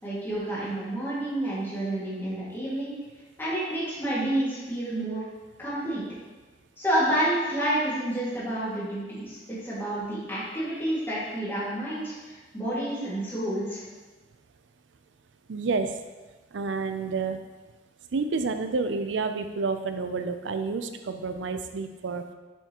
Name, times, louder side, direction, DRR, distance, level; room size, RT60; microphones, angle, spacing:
voice 1, 0.0-2.9 3.4-5.2 5.6-6.0 6.8-13.8, right 1 dB, 15° left, -10 dB, 2.1 m, -29 dB
voice 2, 15.5-16.0 16.5-17.4 18.1-22.2, right 4 dB, 90° right, 8 dB, 0.5 m, -29 dB
7.0 x 5.8 x 3.0 m, 1.3 s
head